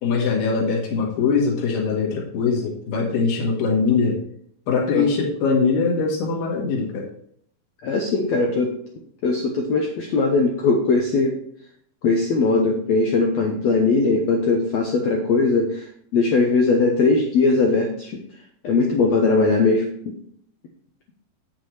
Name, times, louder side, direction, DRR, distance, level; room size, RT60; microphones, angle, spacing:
voice 1, 0.0-4.2 4.7-7.1, left 5 dB, 70° left, -1 dB, 3.2 m, -22 dB
voice 2, 7.8-8.7 9.2-11.3 12.0-18.2 18.6-19.9, left 3 dB, 85° left, 1 dB, 1.5 m, -20 dB
8.5 x 7.6 x 3.2 m, 0.67 s
omnidirectional pair, 4.3 m